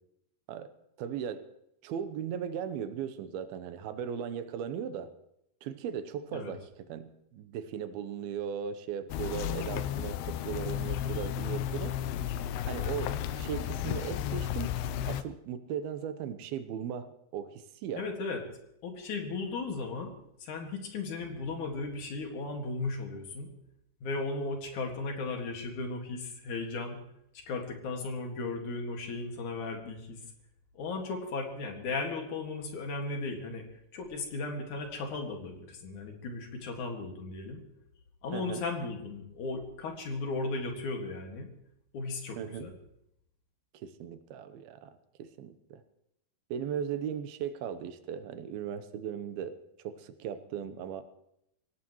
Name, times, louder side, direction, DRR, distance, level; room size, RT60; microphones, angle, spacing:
voice 1, 1.0-1.5 1.8-5.1 5.6-12.0 12.7-14.7 15.1-18.1 38.3-38.6 42.4-42.7 43.7-45.8 46.5-51.0, right 8 dB, 80° right, 11 dB, 2.7 m, -37 dB
sound 1, 9.1-15.2, left 10 dB, 85° left, 2.6 m, -33 dB
voice 2, 18.0-18.4 18.8-23.5 24.0-27.0 27.3-30.2 30.7-33.7 33.9-37.6 38.2-41.5 41.9-42.7, left 3 dB, 60° left, 3 dB, 3.1 m, -36 dB
25.0 x 17.5 x 3.1 m, 0.79 s
omnidirectional pair, 4.4 m